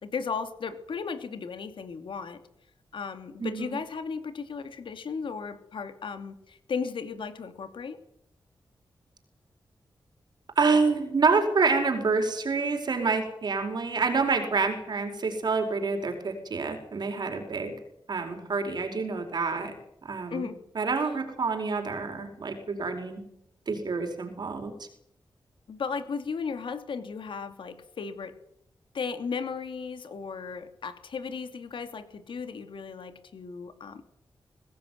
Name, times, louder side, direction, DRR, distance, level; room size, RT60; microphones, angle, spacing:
voice 1, 0.0-2.4 2.9-8.0 20.3-20.6 25.7-28.4 28.9-34.0, left 5 dB, 85° left, 9 dB, 2.8 m, -35 dB
voice 2, 3.4-3.8 10.6-17.7 18.1-19.8 20.0-20.5 20.7-23.2 23.7-24.7, right 4 dB, 55° right, 5 dB, 4.7 m, -27 dB
23.0 x 18.0 x 9.5 m, 0.74 s
wide cardioid pair, 150°, 8 cm